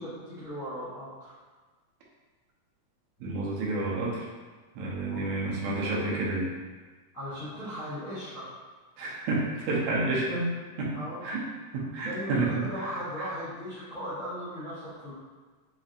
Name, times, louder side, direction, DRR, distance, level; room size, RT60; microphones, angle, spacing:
voice 1, 0.0-1.4 5.0-5.3 7.1-8.5 10.9-11.3 11.9-15.1, equal, 55° left, -14 dB, 0.9 m, -38 dB
voice 2, 3.2-4.3 4.8-6.5 9.0-10.5 10.8-10.9 11.2-11.4 11.7-13.3, right 2 dB, 75° right, -4 dB, 1.8 m, -30 dB
5.1 x 2.6 x 2.4 m, 1.4 s
omnidirectional pair, 3.5 m